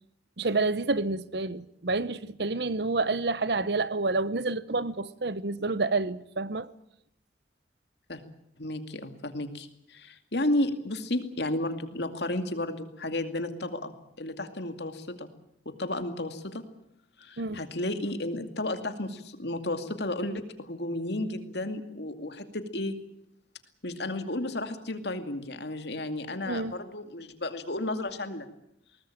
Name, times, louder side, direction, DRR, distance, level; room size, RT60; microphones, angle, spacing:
voice 1, 0.4-6.7 17.4-17.6 26.5-26.8, right 3 dB, 60° right, 0.9 m, -29 dB
voice 2, 8.6-13.9 14.2-15.3 15.7-16.6 17.2-23.0 23.8-28.5, left 1 dB, 65° left, 2.4 m, -33 dB
21.5 x 19.0 x 8.8 m
head